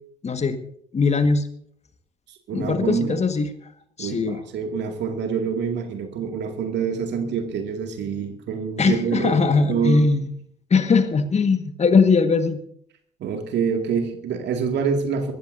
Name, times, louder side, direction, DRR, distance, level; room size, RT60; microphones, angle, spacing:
voice 1, 0.2-0.6 0.9-1.5 2.5-3.5 4.0-4.4 8.8-10.3 10.7-12.6, left 4 dB, 30° left, 9 dB, 1.6 m, -20 dB
voice 2, 2.5-3.2 4.0-10.1 13.2-15.3, right 6 dB, 55° right, 4 dB, 2.3 m, -26 dB
24.0 x 14.5 x 2.7 m, 0.66 s
figure-of-eight pair, 50°, 21 cm